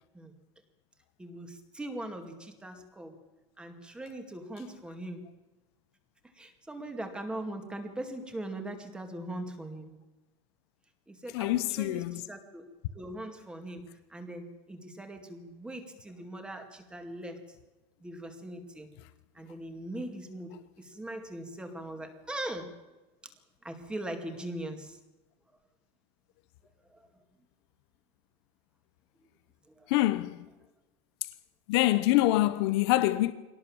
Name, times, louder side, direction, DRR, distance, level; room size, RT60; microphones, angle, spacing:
voice 1, 1.2-3.2 3.6-5.2 6.3-9.9 11.1-12.7 12.9-17.6 18.0-18.9 19.3-22.7 23.2-23.4 23.6-25.0 26.9-27.1 29.7-29.9, right 1 dB, 5° right, 2.2 m, -41 dB
voice 2, 11.3-12.2 29.9-30.4 31.7-33.3, left 16 dB, 65° left, 1.0 m, -25 dB
24.0 x 18.5 x 7.2 m
supercardioid pair, 170°, 15 cm